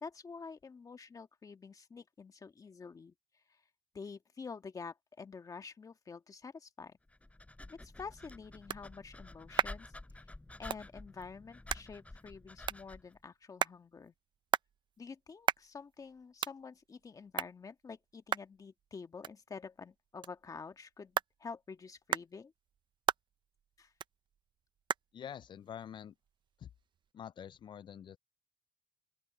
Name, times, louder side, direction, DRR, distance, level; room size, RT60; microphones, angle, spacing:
voice 1, 0.0-3.1 3.5-3.6 3.9-7.0 7.7-9.9 10.6-14.1 15.0-22.5 23.8-23.9, left 5 dB, 35° left, 1.7 m, -48 dB
Dog, 7.1-13.2, left 2 dB, 15° left, 5.3 m, -50 dB
sound 1, 7.8-27.1, right 8 dB, 50° right, 0.6 m, -41 dB
voice 2, 25.1-26.1 26.6-26.7 27.1-28.2, left 9 dB, 50° left, 0.4 m, -46 dB
open air
cardioid pair, 90°, 10 cm